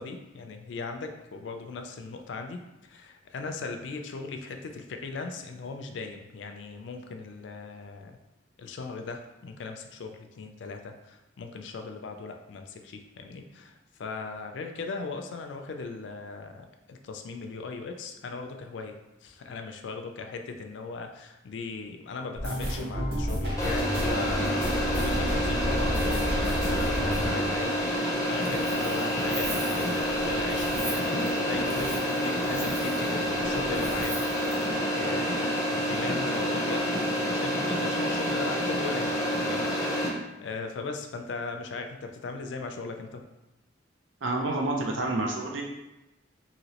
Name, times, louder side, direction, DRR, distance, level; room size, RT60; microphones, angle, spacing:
voice 1, 0.0-8.2 8.6-19.0 19.2-34.2 34.4-37.0 37.2-43.2, left 4 dB, 75° left, 5 dB, 0.4 m, -38 dB
sound 1, 22.3-29.2 29.4-30.5 30.8-31.1 31.4-31.6, equal, 55° right, 1.1 m, -31 dB
sound 2, 23.6-40.1, equal, 20° left, 0.5 m, -28 dB
Wind, 28.2-34.7, right 2 dB, 35° right, 0.6 m, -41 dB
voice 2, 44.2-45.6, right 2 dB, 85° right, 1 dB, 0.5 m, -28 dB
2.9 x 2.8 x 2.8 m, 0.97 s
head